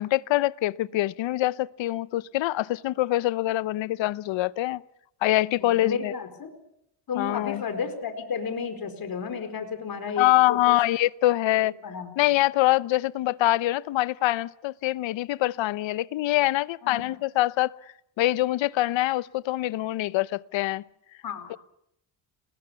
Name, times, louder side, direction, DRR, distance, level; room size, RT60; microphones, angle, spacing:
voice 1, 0.0-4.8 5.2-6.1 7.2-7.6 10.2-11.7 12.2-17.7 18.2-20.8 21.5-21.6, left 16 dB, 70° left, 0.9 m, -24 dB
voice 2, 5.6-6.5 7.1-10.8 11.8-12.1 16.8-17.2 21.2-21.6, left 6 dB, 45° left, 4.7 m, -32 dB
29.0 x 20.0 x 7.1 m
cardioid pair, 85°, 48 cm